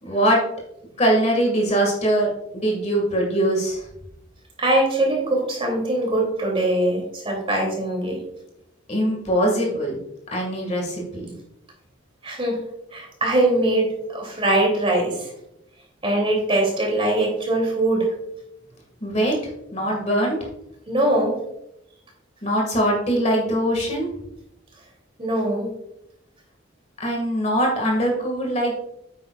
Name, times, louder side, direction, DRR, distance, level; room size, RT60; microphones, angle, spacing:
voice 1, 0.0-0.4 1.0-3.8 8.9-10.0 10.3-11.3 19.0-19.4 19.7-20.4 22.4-24.1 27.0-28.7, right 1 dB, 35° left, 0 dB, 2.0 m, -22 dB
voice 2, 4.6-8.2 12.2-12.6 12.9-15.3 16.0-18.1 20.9-21.4 25.2-25.7, right 1 dB, 30° right, -1 dB, 2.9 m, -22 dB
9.4 x 8.6 x 2.4 m, 0.81 s
head